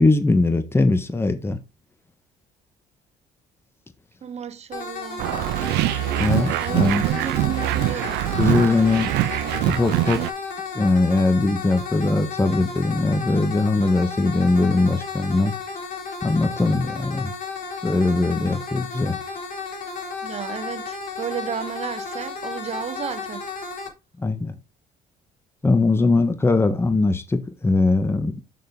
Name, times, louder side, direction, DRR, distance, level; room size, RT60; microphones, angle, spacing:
voice 1, 0.0-1.6 6.2-7.0 8.4-9.1 9.7-10.2 10.7-15.5 16.2-17.3 17.8-19.2 24.2-24.5 25.6-28.3, left 3 dB, 15° left, 1.3 m, -20 dB
voice 2, 4.2-5.3 6.6-8.2 20.2-23.4, right 8 dB, 40° right, 0.9 m, -33 dB
sound 1, 4.7-23.9, left 4 dB, 50° left, 3.6 m, -33 dB
sound 2, 5.2-10.3, right 16 dB, 85° right, 0.5 m, -23 dB
6.9 x 6.3 x 3.6 m
cardioid pair, 110°, 17 cm